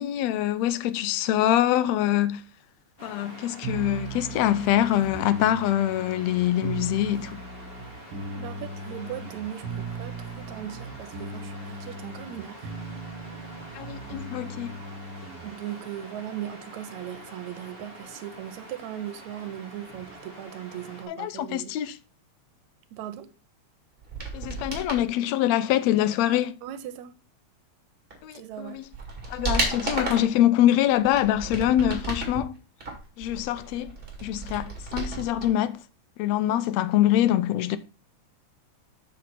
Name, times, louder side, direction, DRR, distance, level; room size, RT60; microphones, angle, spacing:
voice 1, 0.0-2.4 3.0-7.4 13.7-14.7 21.1-21.9 24.3-26.5 28.2-28.8 29.3-32.5 33.2-33.9 34.2-35.8 36.2-37.8, left 12 dB, 75° left, 1.7 m, -24 dB
Waves surf, 3.0-21.1, equal, 50° left, 0.6 m, -45 dB
sound 1, 3.6-15.5, right 3 dB, 55° right, 1.7 m, -38 dB
voice 2, 8.4-12.7 15.4-21.8 22.9-23.3 26.6-27.1 28.3-28.8, right 11 dB, 75° right, 2.1 m, -38 dB
sound 2, 24.0-25.1 28.1-28.2 28.7-30.4 30.9-32.4 32.8-35.5 35.7-35.8, right 3 dB, 20° right, 2.1 m, -33 dB
6.6 x 6.5 x 4.3 m
omnidirectional pair, 3.4 m